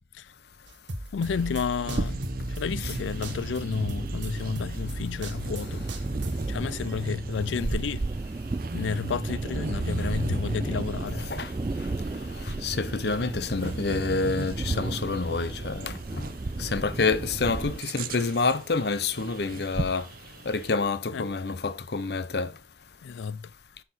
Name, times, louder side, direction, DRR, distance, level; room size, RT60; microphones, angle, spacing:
sound 1, 0.7-6.5, right 1 dB, 85° right, 1.4 m, -37 dB
voice 1, 1.1-5.9 6.5-8.0 8.7-11.3 21.1-21.2 23.0-23.5, left 6 dB, 85° left, 0.4 m, -31 dB
Bird vocalization bird call bird song, 1.2-20.7, right 2 dB, 50° right, 0.7 m, -38 dB
sound 2, 2.7-17.8, right 3 dB, 25° right, 0.3 m, -34 dB
voice 2, 11.1-11.5 11.8-11.9 12.3-16.3 16.6-20.1 20.4-22.6, left 4 dB, 60° left, 0.7 m, -28 dB
9.3 x 5.8 x 4.2 m
head